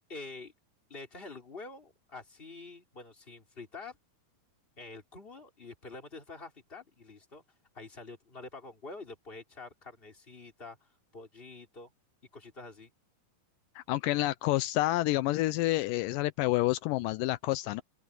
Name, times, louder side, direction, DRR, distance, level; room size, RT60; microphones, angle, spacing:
voice 1, 0.1-0.5 0.9-4.0 4.8-7.4 7.7-11.9 12.3-12.9, left 3 dB, 15° left, 3.4 m, -47 dB
voice 2, 13.8-17.8, left 17 dB, 90° left, 1.9 m, -28 dB
open air
omnidirectional pair, 4.5 m